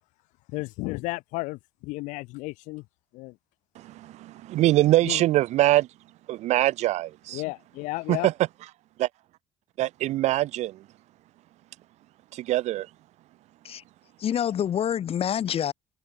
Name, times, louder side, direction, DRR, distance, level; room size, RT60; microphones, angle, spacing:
voice 1, 0.5-2.8 3.1-3.4 5.0-5.2 7.3-8.3, left 23 dB, 80° left, 2.6 m, -33 dB
voice 2, 3.8-5.9 6.3-7.4 8.1-8.3 9.0-9.1 9.8-10.8 12.3-12.9, right 15 dB, 65° right, 0.4 m, -23 dB
voice 3, 14.2-15.7, left 9 dB, 50° left, 0.7 m, -26 dB
hypercardioid pair, 55°, 13 cm